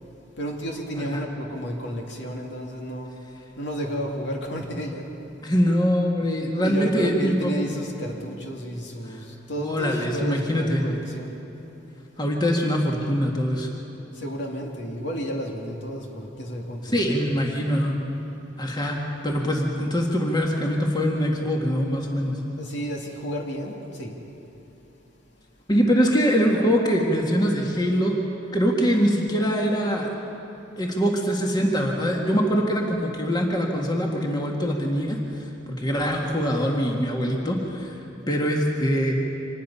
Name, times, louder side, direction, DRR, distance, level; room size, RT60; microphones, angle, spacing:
voice 1, 0.4-3.1 3.6-5.0 6.3-11.4 14.2-17.1 22.6-23.7 24.0-24.1, equal, 70° left, 0 dB, 2.6 m, -32 dB
voice 2, 5.4-7.6 9.6-10.8 12.2-13.7 16.8-18.0 18.6-22.3 25.7-28.2 28.5-30.1 30.8-35.2 35.7-37.9 38.3-39.1, equal, 20° left, 0 dB, 1.8 m, -23 dB
25.5 x 19.5 x 5.7 m, 2.9 s
head